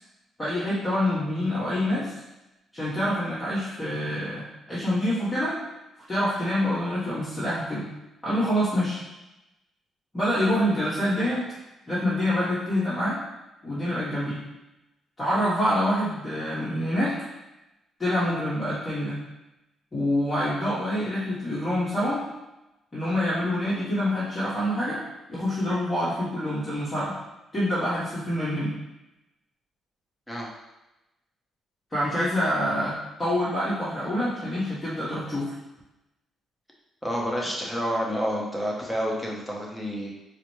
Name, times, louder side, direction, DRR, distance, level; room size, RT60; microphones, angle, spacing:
voice 1, 0.4-2.1 2.7-5.6 6.1-7.9 8.2-9.0 10.1-11.4 11.9-13.2 13.6-14.4 15.2-17.1 18.0-19.2 19.9-22.2 22.9-25.0 25.3-27.1 27.5-28.7 31.9-35.5, left 1 dB, 25° left, -11 dB, 1.2 m, -26 dB
voice 2, 37.0-40.1, equal, 5° left, -3 dB, 0.9 m, -29 dB
4.7 x 2.1 x 3.1 m, 0.97 s
cardioid pair, 90°, 0 cm